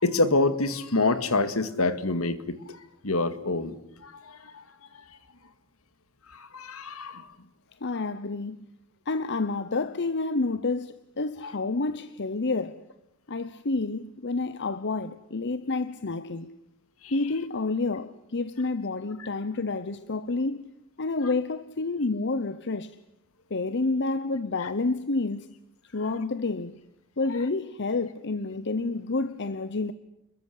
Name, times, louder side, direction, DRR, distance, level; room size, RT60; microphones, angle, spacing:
voice 1, 0.0-2.6 3.0-3.8 4.0-4.4 6.3-7.3 17.0-17.1, left 2 dB, 70° left, 2.2 m, -26 dB
voice 2, 7.8-8.6 9.1-12.8 13.3-16.5 17.1-20.6 21.0-23.0 23.5-25.5 25.9-26.7 27.2-29.9, left 3 dB, 55° left, 1.0 m, -29 dB
29.5 x 22.0 x 8.5 m
head